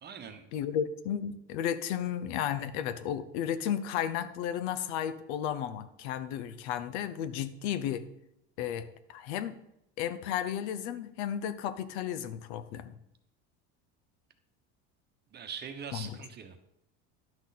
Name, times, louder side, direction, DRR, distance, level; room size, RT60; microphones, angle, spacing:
voice 1, 0.0-0.5 15.3-16.7, right 7 dB, 30° right, 7 dB, 1.0 m, -43 dB
voice 2, 0.5-8.0 8.6-9.6 10.0-12.9 15.9-16.2, left 9 dB, 80° left, 12 dB, 0.8 m, -33 dB
11.0 x 6.3 x 4.1 m, 0.80 s
cardioid pair, 135°, 33 cm